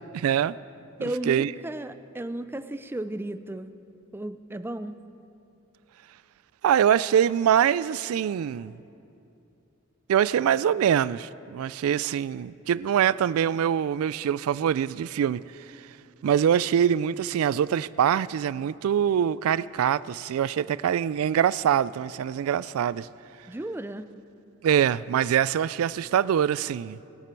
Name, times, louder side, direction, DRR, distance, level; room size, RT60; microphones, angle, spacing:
voice 1, 0.1-0.5 1.0-1.5 6.6-8.7 10.1-15.4 15.7-15.8 16.2-23.1 24.6-27.0, right 9 dB, 90° right, 0.3 m, -24 dB
voice 2, 1.0-3.8 4.1-5.0 23.5-24.1, right 1 dB, 10° right, 0.4 m, -34 dB
19.5 x 12.0 x 4.6 m
head